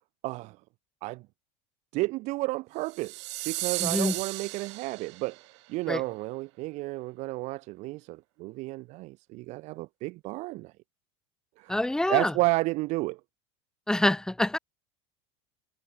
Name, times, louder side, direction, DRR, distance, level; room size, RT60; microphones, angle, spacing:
voice 1, 0.2-0.6 1.0-1.2 1.9-5.4 5.7-10.7 11.6-11.8 12.1-13.2, right 21 dB, 55° right, 1.9 m, -31 dB
sound 1, 2.9-5.4, right 22 dB, 80° right, 4.9 m, -34 dB
voice 2, 3.8-4.1 5.9-6.0 11.7-12.3 13.9-14.6, left 1 dB, 5° left, 2.2 m, -26 dB
supercardioid pair, 140°, 15 cm